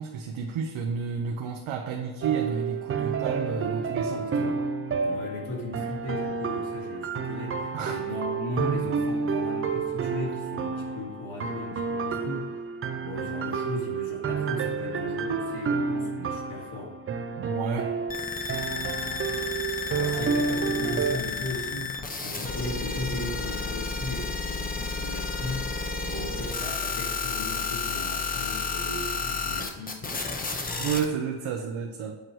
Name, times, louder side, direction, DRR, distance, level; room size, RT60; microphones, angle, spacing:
voice 1, 0.0-4.6 7.7-8.0 17.4-18.0 30.8-32.2, right 6 dB, 80° right, 2 dB, 0.9 m, -31 dB
sound 1, 2.2-21.2, right 5 dB, 30° right, 0.4 m, -30 dB
voice 2, 5.0-12.5 13.0-17.0 19.9-21.9 22.2-25.7 26.0-30.2, left 2 dB, 80° left, -3 dB, 2.4 m, -36 dB
sound 2, 18.1-31.0, left 4 dB, 20° left, 0.6 m, -31 dB
8.5 x 4.6 x 4.9 m, 1.2 s
cardioid pair, 165°, 48 cm